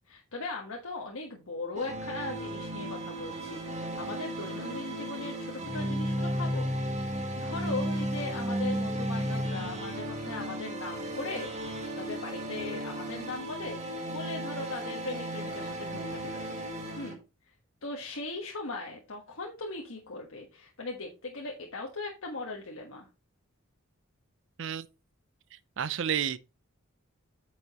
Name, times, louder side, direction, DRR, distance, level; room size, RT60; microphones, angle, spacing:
voice 1, 0.1-6.7 7.0-16.5 17.0-17.2 17.4-17.5 17.8-23.1, left 3 dB, 75° left, 1.4 m, -39 dB
sound 1, 1.7-17.1, right 1 dB, 35° right, 1.7 m, -34 dB
voice 2, 25.8-26.4, right 8 dB, 60° right, 0.5 m, -30 dB
8.9 x 6.2 x 3.0 m
head